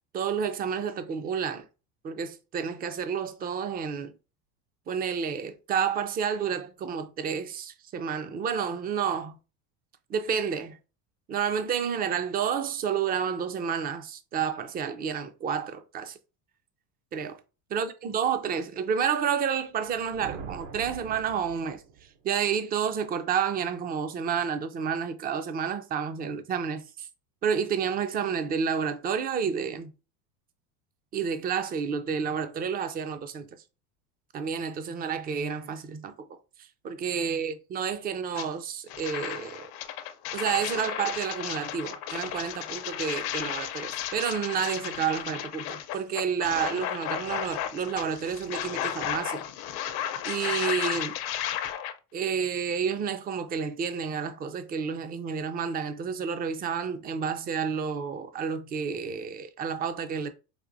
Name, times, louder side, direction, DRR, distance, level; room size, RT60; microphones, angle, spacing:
voice 1, 0.1-1.6 2.0-4.1 4.9-9.4 10.1-10.8 11.3-16.1 17.1-17.4 17.7-21.8 22.2-27.1 27.4-29.9 31.1-33.5 34.3-36.4 36.8-39.7 40.3-49.4 50.2-51.2 52.1-60.3, right 7 dB, 20° right, 0.4 m, -30 dB
sound 1, 19.8-22.3, right 6 dB, 65° right, 0.8 m, -43 dB
sound 2, 38.3-38.5 38.9-51.9, left 11 dB, 50° left, 0.7 m, -34 dB
5.0 x 2.5 x 2.5 m
supercardioid pair, 105°, 46 cm